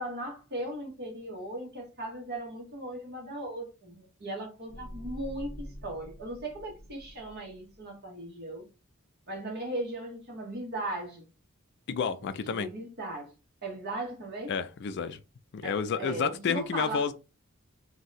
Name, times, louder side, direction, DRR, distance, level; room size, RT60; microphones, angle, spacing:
voice 1, 0.0-8.7 9.3-11.3 12.5-13.3 13.6-14.5 15.6-17.1, right 1 dB, 50° right, 1.1 m, -37 dB
sound 1, 4.7-7.8, equal, 20° left, 0.7 m, -45 dB
voice 2, 11.9-12.7 14.5-15.2 15.5-17.1, left 6 dB, 55° left, 0.4 m, -30 dB
2.6 x 2.2 x 3.9 m
head